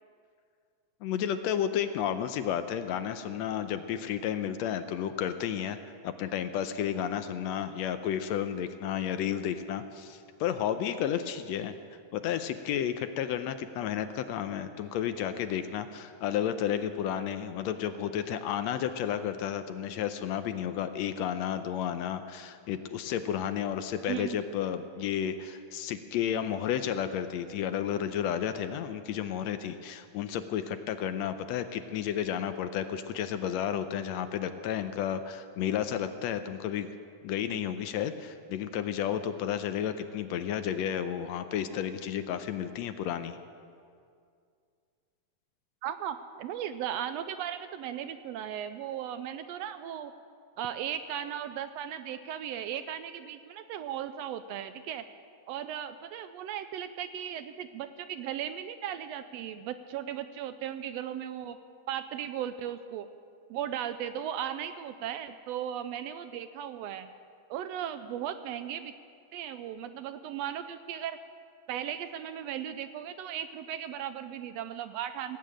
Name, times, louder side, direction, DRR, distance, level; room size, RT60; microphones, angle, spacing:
voice 1, 1.0-5.8 6.0-11.7 12.1-36.9 37.2-43.4, left 9 dB, 80° left, 10 dB, 1.7 m, -32 dB
voice 2, 24.0-24.4 45.8-50.1 50.6-55.0 55.5-61.6 61.9-63.1 63.5-67.1 67.5-68.9 69.3-71.2 71.7-75.4, right 10 dB, 80° right, 11 dB, 1.5 m, -36 dB
18.0 x 8.4 x 8.9 m, 2.3 s
omnidirectional pair, 3.4 m